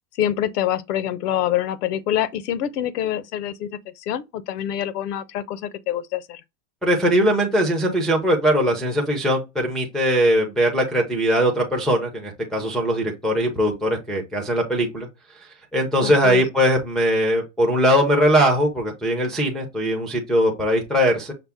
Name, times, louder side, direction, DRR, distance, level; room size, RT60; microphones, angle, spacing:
voice 1, 0.2-6.4 16.0-16.4, left 11 dB, 80° left, 0.7 m, -26 dB
voice 2, 6.8-15.1 15.7-21.3, equal, ahead, 0.5 m, -20 dB
5.8 x 2.0 x 3.5 m
supercardioid pair, 140°, 47 cm